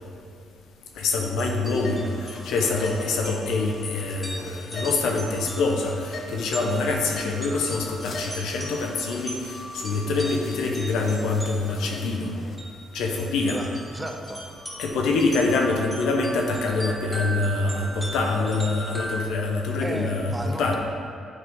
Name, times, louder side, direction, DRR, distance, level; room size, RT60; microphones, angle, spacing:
voice 1, 1.0-12.4 12.9-13.6 14.8-20.8, left 3 dB, 85° left, 1 dB, 0.9 m, -25 dB
sound 1, 1.3-11.9 12.6-12.7 13.1-19.2, right 1 dB, 5° left, 1.9 m, -39 dB
sound 2, 1.7-12.6, left 2 dB, 50° left, 0.8 m, -41 dB
voice 2, 13.5-14.4 19.8-20.8, right 1 dB, 15° right, 3 dB, 0.8 m, -34 dB
9.5 x 4.1 x 4.8 m, 2.3 s
cardioid pair, 90°, 0 cm